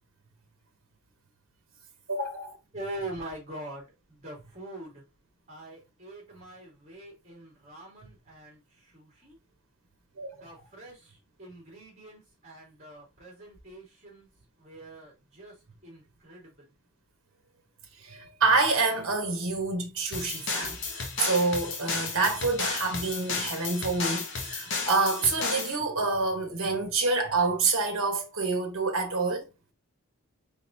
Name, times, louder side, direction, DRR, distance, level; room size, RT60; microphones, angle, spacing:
voice 1, 2.1-2.5 10.2-10.3 18.0-29.4, right 3 dB, 60° right, 1.3 m, -27 dB
voice 2, 2.7-5.0 5.5-9.4 10.4-14.3 14.6-15.5 15.8-16.7, right 1 dB, 30° right, 2.4 m, -43 dB
Battery Filtred Breakbeat Loop, 20.1-25.8, left 4 dB, 55° left, 1.0 m, -33 dB
4.0 x 3.8 x 2.7 m
head